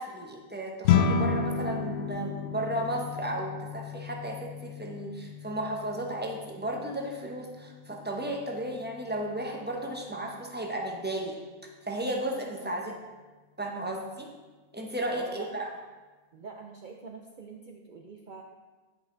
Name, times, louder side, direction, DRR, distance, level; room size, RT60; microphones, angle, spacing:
voice 1, 0.0-11.4 11.9-12.9 13.6-14.3 14.7-15.7, right 1 dB, 10° right, 0 dB, 0.7 m, -34 dB
sound 1, 0.8-10.3, left 6 dB, 85° left, 1.1 m, -32 dB
voice 2, 15.1-15.5 16.3-18.4, right 4 dB, 65° right, 2 dB, 0.4 m, -44 dB
10.5 x 5.3 x 3.8 m, 1.3 s
omnidirectional pair, 1.5 m